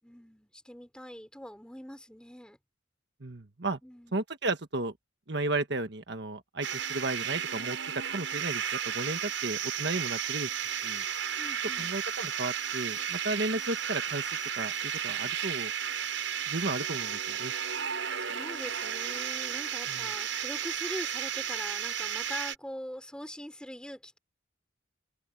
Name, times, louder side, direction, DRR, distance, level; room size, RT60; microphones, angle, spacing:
voice 1, 0.0-2.6 3.8-4.2 11.4-12.0 18.2-24.2, equal, 5° left, 4.8 m, -43 dB
voice 2, 3.2-3.8 4.1-4.9 5.3-7.8 8.1-10.5 10.8-11.0 11.8-14.2 14.6-15.7 16.5-17.5 19.9-20.0, right 2 dB, 60° right, 1.5 m, -34 dB
sound 1, 6.6-22.6, right 8 dB, 80° right, 6.5 m, -33 dB
open air
head